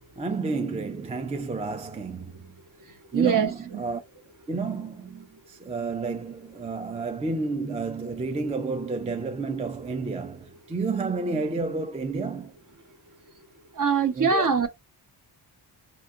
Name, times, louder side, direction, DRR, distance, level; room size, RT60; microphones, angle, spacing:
voice 1, 0.2-2.5 3.1-4.0 4.5-12.5 14.1-14.7, right 4 dB, 15° right, 0.4 m, -31 dB
voice 2, 3.1-3.5 13.8-14.7, right 6 dB, 45° right, 0.8 m, -22 dB
3.5 x 2.8 x 2.2 m
cardioid pair, 45°, 47 cm